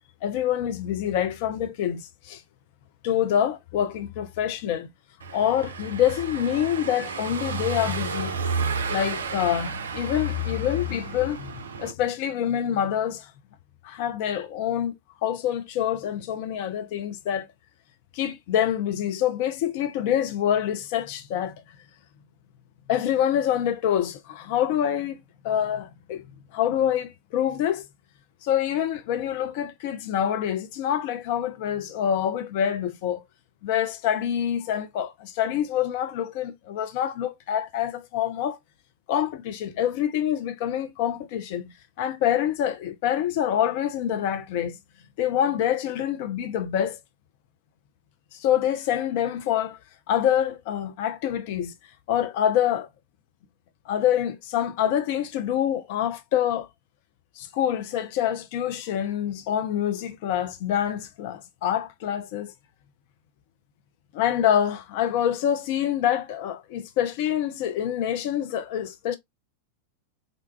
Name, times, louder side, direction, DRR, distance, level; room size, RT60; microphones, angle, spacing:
voice 1, 0.2-2.4 3.0-4.9 5.3-8.3 8.9-13.3 13.8-14.9 15.2-17.5 18.1-21.5 22.9-25.2 25.4-26.2 26.5-27.8 28.4-33.2 33.6-38.6 39.1-44.8 45.2-47.0 48.3-49.8 50.1-51.7 52.1-52.9 53.9-56.7 57.4-62.5 64.1-69.2, left 10 dB, 50° left, 0.4 m, -26 dB
Car passing by / Engine, 5.2-11.9, right 5 dB, 65° right, 0.4 m, -32 dB
3.9 x 2.2 x 2.2 m
figure-of-eight pair, 90°, 0 cm